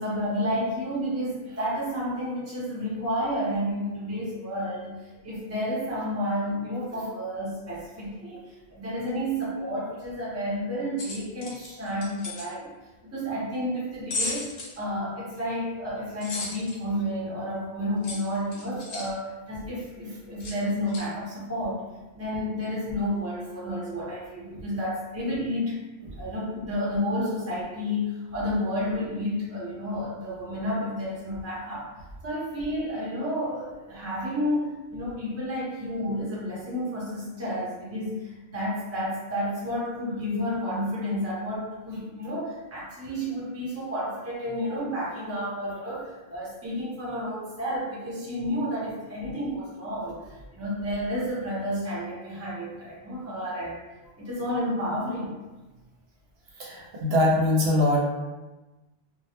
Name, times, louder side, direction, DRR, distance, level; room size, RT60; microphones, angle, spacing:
voice 1, 0.0-5.0 5.2-12.7 13.1-21.8 22.1-25.8 26.2-31.9 32.2-53.9 54.2-55.3, equal, 15° right, -7 dB, 0.6 m, -31 dB
sound 1, 11.0-12.5 14.1-14.8 16.2-16.8 18.0-19.1 20.4-20.6 20.9-21.0, left 2 dB, 75° left, 0.8 m, -34 dB
voice 2, 56.6-58.0, left 1 dB, 75° right, -3 dB, 0.8 m, -22 dB
2.2 x 2.1 x 2.8 m, 1.1 s
omnidirectional pair, 1.1 m